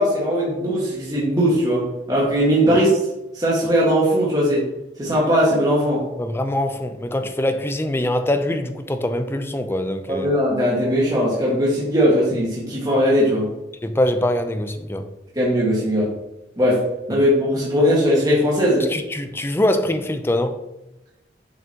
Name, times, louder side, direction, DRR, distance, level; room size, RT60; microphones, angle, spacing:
voice 1, 0.0-2.9 3.3-4.7 5.0-6.0 10.1-13.5 15.3-16.1 16.6-16.8 17.1-18.9, equal, 20° right, 1.6 m, -19 dB
voice 2, 6.2-10.3 13.8-15.1 18.8-20.6, left 1 dB, 15° left, 0.5 m, -23 dB
7.0 x 6.0 x 2.9 m
head